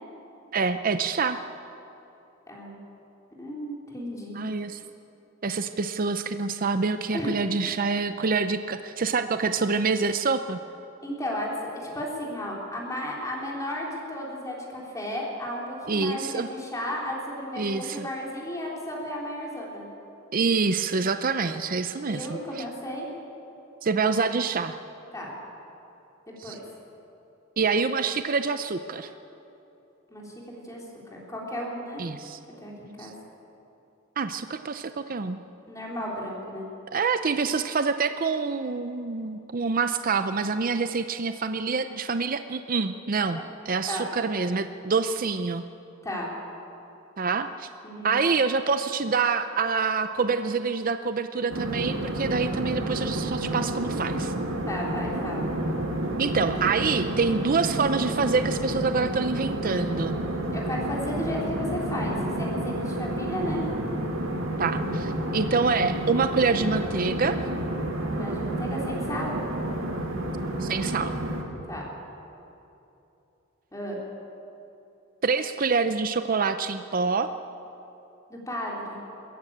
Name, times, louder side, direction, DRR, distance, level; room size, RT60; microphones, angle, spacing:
voice 1, 0.5-1.4 4.4-4.8 5.4-10.6 15.9-16.5 17.6-18.1 20.3-22.3 22.6-22.7 23.8-24.8 26.4-26.6 27.6-29.1 32.0-32.4 33.0-33.1 34.2-35.4 36.9-43.4 43.7-45.6 47.2-47.7 48.0-54.3 56.2-60.2 64.6-67.4 70.6-71.1 75.2-77.3, right 4 dB, 45° right, 10 dB, 0.6 m, -26 dB
voice 2, 2.5-2.8 3.4-4.4 7.1-7.4 11.0-19.9 21.9-23.1 25.1-25.4 26.4-26.6 30.1-30.8 31.1-32.0 32.6-33.1 35.7-36.6 43.9-44.1 46.0-46.3 47.8-48.2 54.6-55.5 60.5-63.6 68.0-69.4 71.7-71.9 73.7-74.0 78.3-79.0, left 1 dB, 15° left, -3 dB, 3.5 m, -34 dB
sound 1, 51.5-71.4, right 1 dB, 90° right, 2.6 m, -30 dB
22.0 x 14.0 x 8.7 m, 2.9 s
head